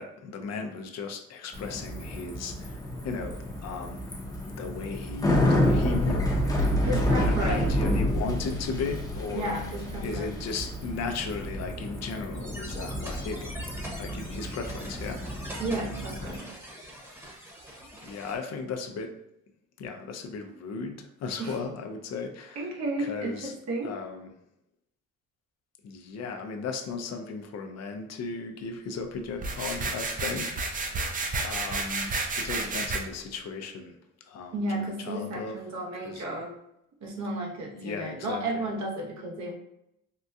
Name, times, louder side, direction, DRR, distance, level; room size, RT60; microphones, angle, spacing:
voice 1, 0.0-4.1 4.4-6.2 7.2-9.6 10.0-13.6 14.0-15.2 18.0-19.1 19.8-22.7 23.0-23.5 23.8-24.3 25.8-34.0 34.2-35.6 35.9-36.2 37.8-38.7, left 4 dB, 60° left, 5 dB, 0.5 m, -36 dB
Bicycle, 1.5-16.4, equal, 10° left, 0.7 m, -29 dB
voice 2, 6.8-7.7 9.3-10.3 15.6-16.5 21.4-21.6 22.6-23.9 34.5-36.5 37.0-39.5, right 1 dB, 65° right, -1 dB, 0.9 m, -33 dB
sound 1, 12.3-18.4, equal, 10° right, 1.0 m, -43 dB
brushing carpet, 29.4-33.0, right 3 dB, 30° right, 0.5 m, -31 dB
3.7 x 2.2 x 2.7 m, 0.81 s
cardioid pair, 90°, 30 cm